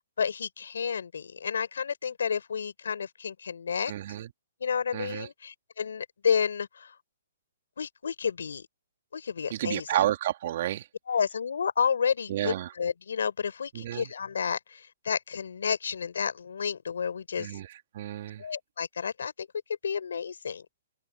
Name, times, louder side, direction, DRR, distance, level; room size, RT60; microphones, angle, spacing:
voice 1, 0.0-3.9 4.6-7.0 7.8-8.7 9.1-10.0 11.1-17.6 18.4-19.5 19.8-20.6, left 6 dB, 85° left, 4.8 m, -31 dB
voice 2, 3.9-4.3 4.9-5.3 9.5-10.9 12.3-12.7 13.7-14.1 17.4-18.5, right 13 dB, 50° right, 2.7 m, -31 dB
hypercardioid pair, 155°, 0 cm